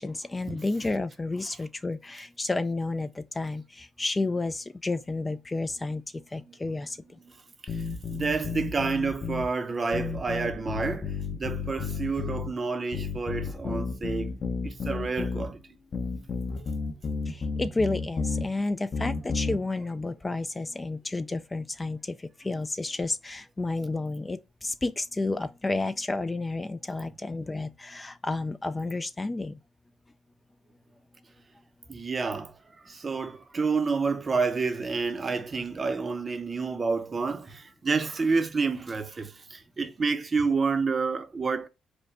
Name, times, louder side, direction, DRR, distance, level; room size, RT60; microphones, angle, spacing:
voice 1, 0.0-7.0 17.3-29.5, left 2 dB, 20° left, 0.4 m, -31 dB
sound 1, 7.7-9.5 9.9-12.5 12.9-15.5 15.9-18.4 18.9-19.6, left 4 dB, 45° left, 1.0 m, -32 dB
voice 2, 8.1-14.4 14.6-15.6 31.9-32.5 32.8-41.7, right 4 dB, 35° right, 0.7 m, -29 dB
5.1 x 2.2 x 4.7 m
cardioid pair, 90°, 0 cm